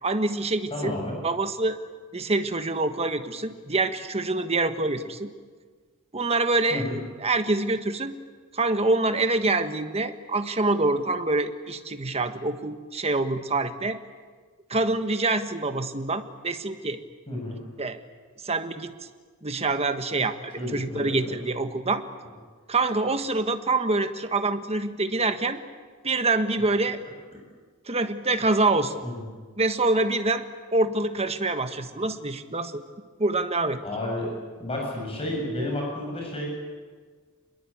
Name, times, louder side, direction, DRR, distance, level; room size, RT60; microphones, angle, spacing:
voice 1, 0.0-1.0 1.2-1.8 2.1-5.3 6.1-8.2 8.5-14.0 14.7-17.0 17.8-18.0 18.4-18.9 19.4-22.0 22.7-25.6 26.0-27.0 27.9-29.0 29.6-30.4 30.7-32.8 33.2-33.8, right 2 dB, 30° right, 8 dB, 1.5 m, -26 dB
voice 2, 0.7-1.2 6.7-7.0 17.3-17.6 20.6-21.2 29.0-29.2 33.8-34.3 34.6-36.5, left 1 dB, 25° left, 0 dB, 7.8 m, -31 dB
27.5 x 21.5 x 8.7 m, 1.5 s
head